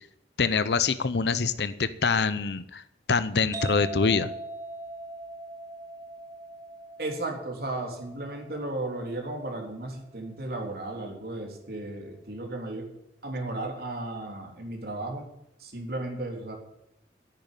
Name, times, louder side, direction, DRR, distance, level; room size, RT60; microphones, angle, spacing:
voice 1, 0.4-2.8 3.1-4.3, left 5 dB, 70° left, 14 dB, 0.7 m, -25 dB
sound 1, 3.5-11.0, right 2 dB, 20° right, 1.7 m, -41 dB
voice 2, 7.0-12.9 13.2-15.3 15.6-16.5, right 2 dB, 60° right, 2 dB, 3.4 m, -34 dB
10.5 x 9.1 x 10.0 m, 0.80 s
head